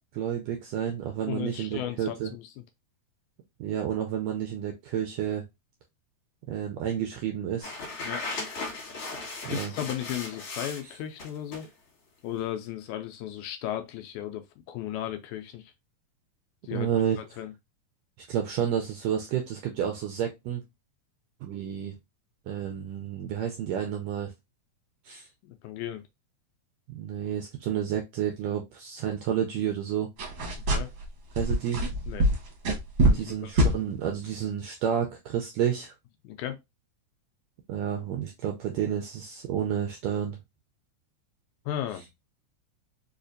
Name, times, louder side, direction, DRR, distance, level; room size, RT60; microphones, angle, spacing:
voice 1, 0.1-2.3 3.6-5.4 6.5-7.8 9.4-9.7 16.7-17.2 18.2-20.6 21.4-22.0 22.5-24.3 25.0-25.3 26.9-30.1 31.3-31.8 33.1-35.9 37.7-40.4, right 9 dB, 80° right, 1.5 m, -30 dB
voice 2, 1.3-2.5 8.0-8.2 9.5-11.7 12.2-15.7 16.6-16.9 17.2-17.5 25.4-26.0 30.7-30.9 32.1-32.3 33.0-33.5 36.2-36.6 41.7-42.1, left 11 dB, 80° left, 1.9 m, -35 dB
sound 1, 7.6-10.8 11.2-11.7, left 3 dB, 55° left, 2.2 m, -37 dB
sound 2, 30.2-31.1 31.3-33.3 33.6-33.8, right 1 dB, 65° right, 1.2 m, -24 dB
5.0 x 2.4 x 2.5 m
omnidirectional pair, 3.6 m